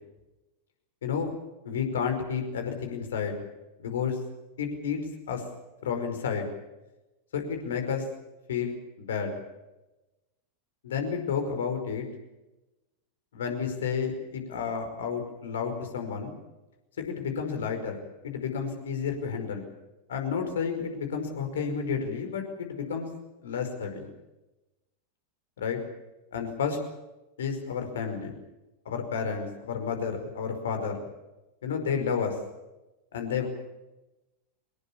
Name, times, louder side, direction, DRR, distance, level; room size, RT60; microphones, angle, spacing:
voice 1, 1.0-1.3 1.6-3.4 3.8-4.2 4.6-5.0 5.3-5.4 5.8-6.5 7.3-8.0 8.5-9.3 10.8-12.0 13.3-16.3 17.0-19.7 20.1-23.1 23.4-24.1 25.6-25.8 26.3-26.8 27.4-28.3 28.8-31.1 31.6-32.4 33.1-33.5, left 6 dB, 60° left, 6 dB, 5.1 m, -31 dB
24.5 x 20.5 x 7.1 m, 1.0 s
figure-of-eight pair, 90°, 0 cm